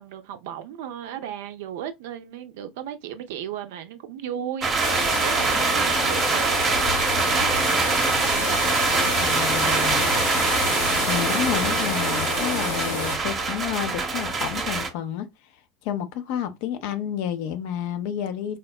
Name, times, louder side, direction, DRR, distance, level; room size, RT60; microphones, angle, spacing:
voice 1, 0.0-8.7, right 9 dB, 60° right, 0.4 m, -36 dB
sound 1, 4.6-14.9, right 4 dB, 30° right, 0.7 m, -24 dB
sound 2, 4.8-13.2, left 2 dB, 80° left, 1.5 m, -28 dB
voice 2, 9.2-10.1 11.1-15.3 15.8-18.6, left 9 dB, 55° left, 0.5 m, -30 dB
4.2 x 2.0 x 2.2 m
figure-of-eight pair, 75°, 0 cm